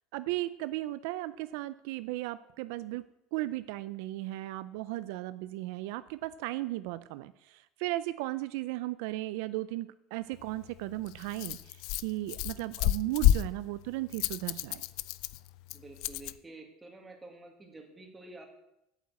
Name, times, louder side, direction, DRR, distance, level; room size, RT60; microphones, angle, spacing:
voice 1, 0.1-3.0 3.3-14.8, right 17 dB, 80° right, 14 dB, 0.4 m, -36 dB
Rattle, 10.3-16.4, left 14 dB, 65° left, 0.4 m, -31 dB
voice 2, 15.7-18.5, right 2 dB, 10° right, 3 dB, 2.1 m, -49 dB
8.9 x 8.2 x 8.0 m, 0.83 s
cardioid pair, 155°, 0 cm